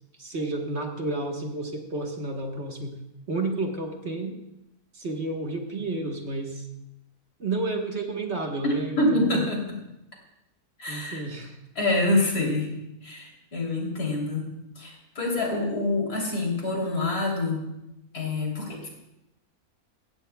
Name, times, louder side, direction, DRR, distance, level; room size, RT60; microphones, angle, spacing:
voice 1, 0.2-2.9 3.3-4.4 4.9-6.7 7.4-9.4 10.9-11.6, right 2 dB, 45° right, 2 dB, 1.5 m, -31 dB
voice 2, 8.6-9.6 10.8-11.2 11.8-12.7 13.0-14.5 14.8-17.6 18.1-18.9, left 2 dB, 80° left, -1 dB, 3.7 m, -26 dB
16.5 x 15.5 x 2.3 m, 0.88 s
omnidirectional pair, 1.6 m